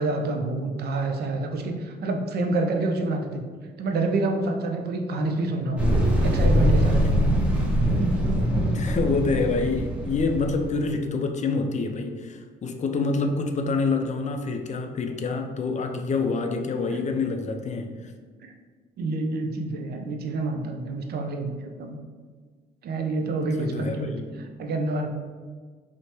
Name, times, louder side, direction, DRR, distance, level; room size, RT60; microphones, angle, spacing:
voice 1, 0.0-3.4 3.8-5.8 6.2-7.0 16.9-17.0 18.4-18.5 19.0-22.0 22.8-24.2 24.6-25.1, right 2 dB, 55° right, 4 dB, 0.5 m, -27 dB
sound 1, 5.8-10.9, equal, 5° right, 0.7 m, -22 dB
voice 2, 7.0-7.5 8.7-18.1 23.4-24.5, left 4 dB, 35° left, 5 dB, 0.4 m, -27 dB
3.1 x 2.1 x 2.8 m, 1.5 s
hypercardioid pair, 55°, 20 cm